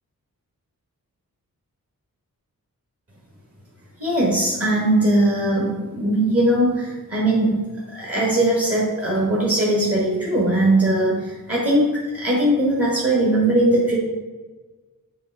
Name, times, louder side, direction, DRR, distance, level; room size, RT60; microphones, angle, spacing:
voice 1, 4.0-7.6 7.9-14.0, right 1 dB, 40° right, -5 dB, 1.8 m, -20 dB
7.6 x 3.6 x 4.9 m, 1.3 s
wide cardioid pair, 80°, 35 cm